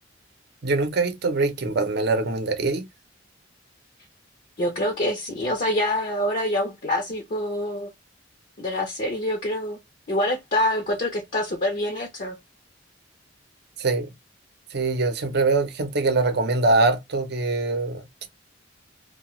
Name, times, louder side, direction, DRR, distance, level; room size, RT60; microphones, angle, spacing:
voice 1, 0.6-2.9 13.8-14.1 14.7-18.3, right 3 dB, 55° right, 0.6 m, -23 dB
voice 2, 4.6-7.9 8.6-9.8 10.1-12.4, left 1 dB, 45° left, 0.6 m, -26 dB
2.7 x 2.2 x 3.0 m
head